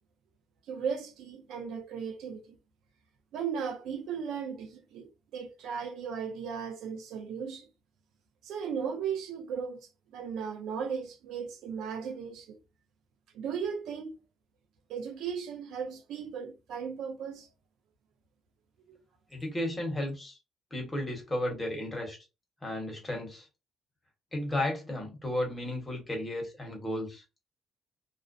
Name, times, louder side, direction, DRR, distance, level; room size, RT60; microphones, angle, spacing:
voice 1, 0.7-2.6 3.3-7.7 8.4-12.6 13.3-14.2 14.9-17.5 18.9-19.0, right 6 dB, 80° right, 0.5 m, -36 dB
voice 2, 19.3-20.4 20.7-22.2 22.6-23.5 24.3-27.2, left 1 dB, 15° left, 1.2 m, -33 dB
2.4 x 2.0 x 2.5 m
cardioid pair, 115°, 0 cm